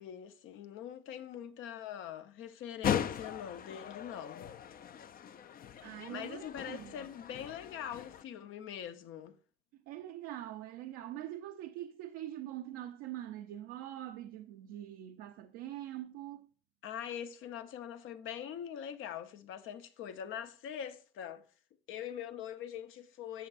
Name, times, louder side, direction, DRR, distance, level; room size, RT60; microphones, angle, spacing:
voice 1, 0.0-4.5 5.8-9.4 16.8-21.5 21.9-23.5, left 9 dB, 70° left, 0.8 m, -43 dB
sound 1, 2.8-8.2, left 8 dB, 45° left, 0.5 m, -39 dB
voice 2, 5.8-7.1 9.9-16.5, right 13 dB, 80° right, 0.6 m, -44 dB
10.0 x 6.9 x 2.5 m
supercardioid pair, 70°, 21 cm